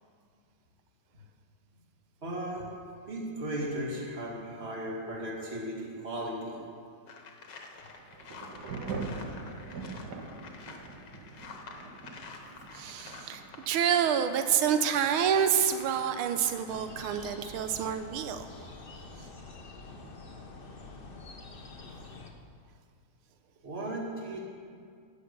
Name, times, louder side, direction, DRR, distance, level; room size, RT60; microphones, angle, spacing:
voice 1, 2.2-2.7 3.1-6.6 23.6-24.4, right 1 dB, 30° right, -3 dB, 2.3 m, -36 dB
sound 1, 7.1-16.9 17.4-17.6, left 4 dB, 60° left, 1.7 m, -49 dB
Thunder / Rain, 7.8-22.2, right 3 dB, 55° right, 1.7 m, -45 dB
voice 2, 12.7-18.5, right 8 dB, 90° right, 8 dB, 1.6 m, -28 dB
sound 2, 16.7-22.3, left 3 dB, 45° left, 0.7 m, -47 dB
17.5 x 6.8 x 6.7 m, 2.2 s
omnidirectional pair, 2.3 m